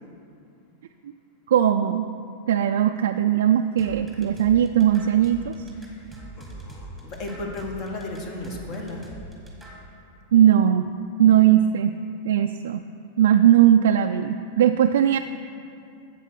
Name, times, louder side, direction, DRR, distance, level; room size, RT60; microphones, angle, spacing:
voice 1, 1.5-2.1 2.5-5.5 10.3-10.9 11.2-12.0 12.2-12.8 13.2-15.2, right 10 dB, 80° right, 6 dB, 0.3 m, -19 dB
sound 1, 3.8-9.8, right 1 dB, ahead, 1.6 m, -42 dB
voice 2, 5.7-9.1, left 2 dB, 40° left, 1 dB, 1.5 m, -35 dB
8.1 x 7.5 x 5.9 m, 2.6 s
supercardioid pair, 145°, 0 cm